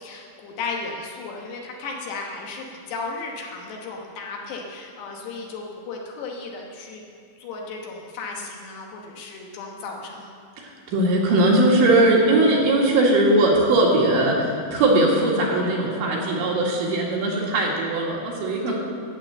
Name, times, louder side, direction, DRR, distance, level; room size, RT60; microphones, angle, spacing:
voice 1, 0.0-7.0 7.4-10.3 18.7-18.8, left 4 dB, 70° left, 0 dB, 3.0 m, -35 dB
voice 2, 10.6-18.8, right 2 dB, 70° right, -2 dB, 4.0 m, -20 dB
12.0 x 9.0 x 7.7 m, 2.3 s
omnidirectional pair, 5.5 m